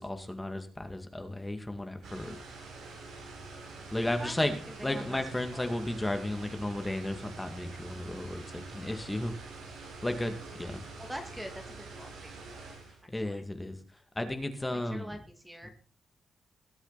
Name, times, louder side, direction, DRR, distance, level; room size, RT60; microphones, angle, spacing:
voice 1, 0.0-2.3 3.9-4.5 4.8-9.3 10.0-10.8 13.1-13.8 14.2-15.1 15.6-15.7, left 1 dB, 15° left, 6 dB, 2.2 m, -34 dB
sound 1, 2.0-13.0, right 3 dB, 90° right, 5.4 m, -46 dB
voice 2, 4.1-4.5 4.8-5.7 11.0-12.3 13.1-13.4 14.7-15.7, equal, 10° right, 5 dB, 2.2 m, -44 dB
20.0 x 8.0 x 4.2 m, 0.37 s
cardioid pair, 85°, 0 cm